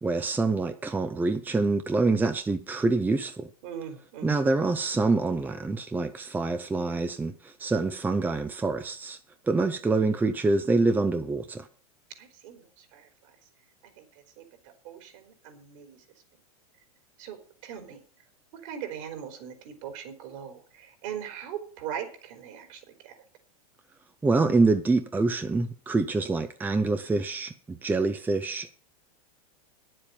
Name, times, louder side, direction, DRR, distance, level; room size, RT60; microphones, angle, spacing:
voice 1, 0.0-3.5 4.2-9.2 9.4-11.7 24.2-28.7, right 3 dB, 10° right, 0.8 m, -26 dB
voice 2, 3.6-4.5 12.2-13.4 13.8-16.0 17.2-18.0 18.5-23.2, right 8 dB, 55° right, 3.9 m, -40 dB
9.9 x 7.7 x 8.7 m
hypercardioid pair, 120°, 19 cm